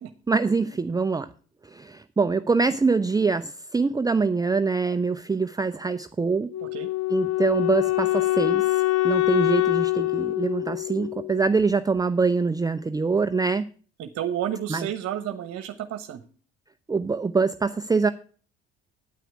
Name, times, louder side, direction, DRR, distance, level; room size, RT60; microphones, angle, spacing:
voice 1, 0.3-1.3 1.7-6.5 7.1-13.6 14.7-14.9 16.9-18.1, right 4 dB, 15° right, 11 dB, 0.6 m, -24 dB
Wind instrument woodwind instrument, 6.5-11.6, left 19 dB, 55° left, 1.1 m, -24 dB
voice 2, 14.0-16.2, right 10 dB, 55° right, 10 dB, 1.2 m, -31 dB
9.5 x 9.2 x 4.8 m, 0.41 s
hypercardioid pair, 60°, 29 cm